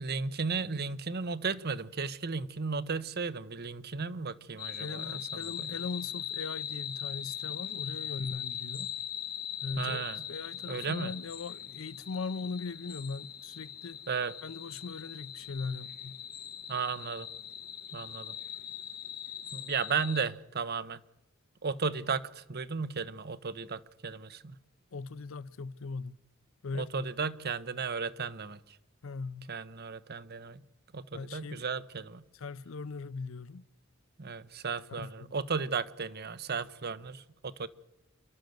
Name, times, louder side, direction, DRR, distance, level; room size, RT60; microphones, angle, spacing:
voice 1, 0.0-5.8 9.8-10.2 10.7-11.1 14.1-14.3 16.7-17.3 17.9-18.3 19.5-21.0 21.6-24.6 26.8-28.6 29.5-30.6 30.9-32.2 34.2-37.7, right 5 dB, 50° right, 0.9 m, -35 dB
sound 1, 4.6-20.2, left 10 dB, 50° left, 1.8 m, -41 dB
voice 2, 4.8-8.9 9.6-14.0 14.4-16.2 24.9-26.2 26.6-27.0 29.0-29.5 31.1-31.8 32.3-33.6 34.9-35.3, left 4 dB, 75° left, 0.6 m, -40 dB
28.5 x 12.0 x 7.9 m
head